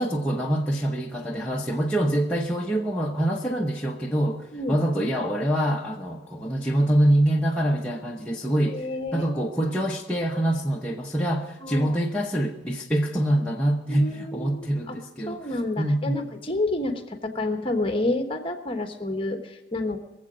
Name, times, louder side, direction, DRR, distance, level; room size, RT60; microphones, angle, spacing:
voice 1, 0.0-8.9 9.1-15.5 15.8-16.2, right 1 dB, 5° left, -3 dB, 0.8 m, -25 dB
voice 2, 8.6-9.3 11.6-11.9 13.9-15.0 15.3-20.0, left 2 dB, 25° left, 5 dB, 1.2 m, -29 dB
23.0 x 7.7 x 4.9 m, 1.0 s
head